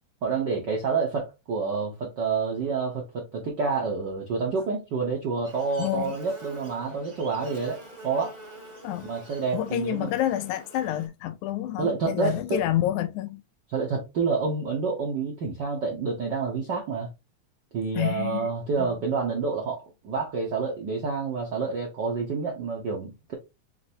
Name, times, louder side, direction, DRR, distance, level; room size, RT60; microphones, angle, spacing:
voice 1, 0.2-8.4 9.0-10.1 11.8-12.6 13.7-17.1 17.7-23.3, right 4 dB, 70° right, 1.0 m, -28 dB
Buzz, 5.4-11.1, right 1 dB, 30° right, 0.8 m, -46 dB
voice 2, 5.8-6.1 8.8-9.1 9.5-13.4 17.9-18.5 18.8-19.0, left 12 dB, 85° left, 2.0 m, -28 dB
5.7 x 3.2 x 2.8 m
omnidirectional pair, 3.5 m